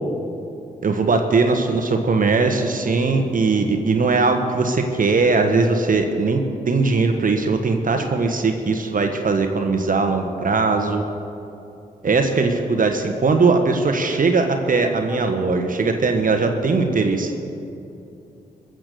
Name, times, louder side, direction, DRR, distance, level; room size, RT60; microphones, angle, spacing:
voice 1, 0.8-11.0 12.0-17.3, right 3 dB, 55° right, 5 dB, 1.4 m, -20 dB
21.5 x 7.9 x 6.9 m, 2.7 s
supercardioid pair, 45°, 17 cm